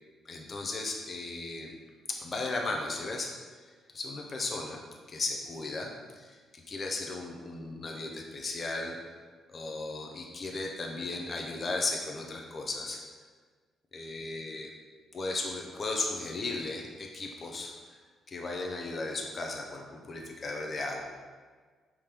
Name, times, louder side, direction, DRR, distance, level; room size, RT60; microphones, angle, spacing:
voice 1, 0.3-1.7 2.1-3.3 3.9-4.8 5.1-9.0 9.5-13.0 13.9-14.7 15.1-17.7 18.3-21.0, left 3 dB, 40° left, 1 dB, 0.6 m, -36 dB
4.9 x 3.6 x 2.9 m, 1.5 s
cardioid pair, 90°, 0 cm